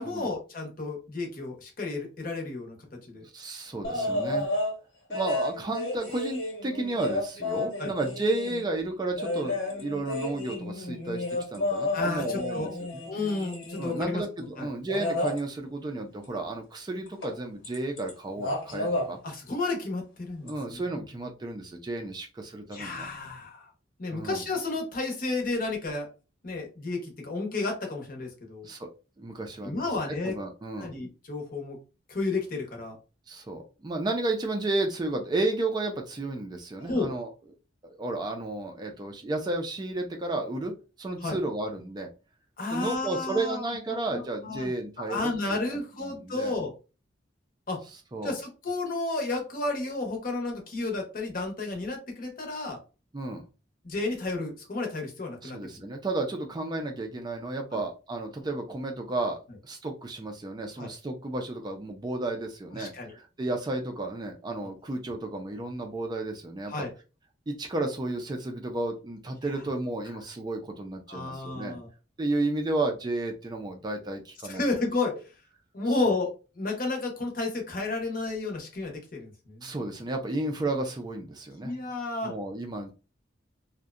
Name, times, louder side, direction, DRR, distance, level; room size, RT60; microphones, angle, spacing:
voice 1, 0.0-2.8 3.0-3.2 3.9-4.4 7.8-7.9 11.9-12.7 13.1-14.2 14.6-14.7 19.2-20.8 22.7-23.7 24.0-26.1 26.4-28.7 29.6-30.4 30.8-31.8 32.1-33.0 36.8-37.1 41.2-41.4 42.6-43.7 44.1-46.7 47.7-47.8 48.2-52.8 53.8-55.8 57.7-57.8 60.8-60.9 62.7-63.1 64.6-64.7 66.7-66.9 71.1-71.9 74.4-75.2 75.7-79.7 81.6-82.3, left 3 dB, 45° left, 2 dB, 0.7 m, -32 dB
voice 2, 3.3-4.5 5.1-11.2 11.5-12.7 13.8-19.2 20.4-23.1 24.1-24.4 28.6-28.9 29.2-29.8 30.2-30.9 33.3-37.3 38.0-40.7 41.0-42.1 42.7-46.6 48.1-48.4 53.1-53.4 55.4-66.7 67.5-71.8 72.2-74.6 76.1-76.2 79.6-81.7 82.2-82.9, right 2 dB, 20° right, 3 dB, 0.3 m, -32 dB
sound 1, 3.8-4.7 5.1-8.6 9.1-14.0 14.9-15.4 17.2-17.3 17.6-18.1 18.4-19.1 20.5-20.6, left 2 dB, 75° left, 1.0 m, -31 dB
2.6 x 2.1 x 2.4 m, 0.32 s
head